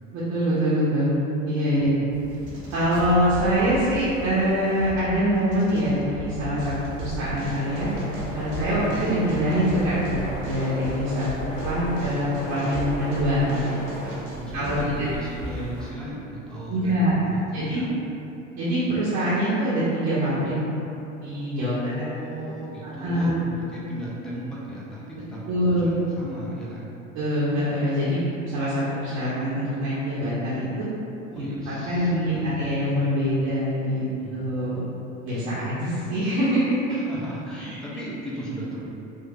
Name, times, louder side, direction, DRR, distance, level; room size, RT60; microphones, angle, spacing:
voice 1, 0.1-1.1 1.4-1.9 2.7-7.9 8.3-11.3 11.6-13.8 14.5-14.9 16.7-17.2 17.5-17.8 18.6-20.5 21.2-21.9 22.8-23.4 25.5-25.9 27.1-28.2 28.5-30.9 31.4-31.5 31.8-34.8 35.3-37.0, equal, 45° right, -10 dB, 0.7 m, -24 dB
sound 1, 2.1-15.9, right 1 dB, 75° right, 0.7 m, -35 dB
sound 2, 7.6-14.1, equal, 40° left, 1.5 m, -36 dB
voice 2, 8.5-9.0 14.4-17.9 21.6-26.9 31.3-32.6 34.2-34.6 35.3-35.4 36.9-38.8, right 1 dB, ahead, -6 dB, 0.4 m, -36 dB
3.0 x 2.0 x 2.7 m, 2.9 s
figure-of-eight pair, 70°, 38 cm